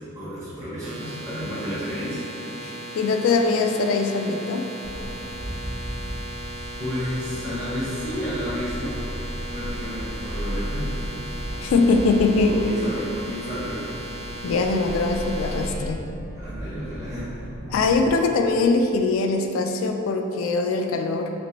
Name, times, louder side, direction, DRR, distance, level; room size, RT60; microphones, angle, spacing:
voice 1, 0.1-2.2 6.8-9.3 9.5-10.9 12.4-13.9 16.3-17.3, equal, 15° right, -12 dB, 0.7 m, -31 dB
sound 1, 0.8-15.7, right 1 dB, 80° right, 0.5 m, -37 dB
voice 2, 2.6-4.7 11.6-12.6 14.4-16.0 17.7-21.3, left 3 dB, 80° left, 6 dB, 0.3 m, -22 dB
sound 2, 4.8-18.1, equal, 65° right, 0.9 m, -35 dB
3.2 x 2.9 x 2.9 m, 2.7 s
head